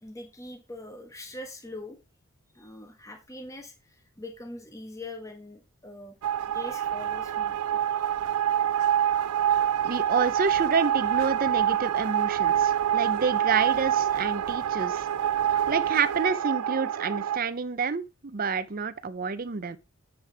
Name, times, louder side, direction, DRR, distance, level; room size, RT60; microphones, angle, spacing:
voice 1, 0.0-2.0 2.5-6.2 6.4-8.0, left 2 dB, 15° left, 1.2 m, -42 dB
sound 1, 6.2-17.4, right 10 dB, 90° right, 0.4 m, -26 dB
voice 2, 9.8-15.1 15.7-19.8, right 5 dB, 40° right, 0.6 m, -28 dB
9.5 x 6.4 x 3.3 m
head